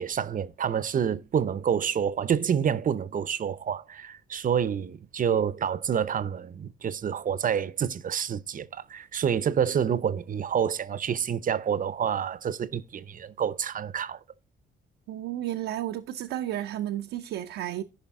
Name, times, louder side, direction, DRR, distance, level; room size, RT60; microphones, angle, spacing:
voice 1, 0.0-14.2, right 8 dB, 45° right, 0.6 m, -28 dB
voice 2, 15.1-17.8, right 12 dB, 85° right, 0.6 m, -32 dB
15.0 x 5.3 x 3.6 m
cardioid pair, 90°, 20 cm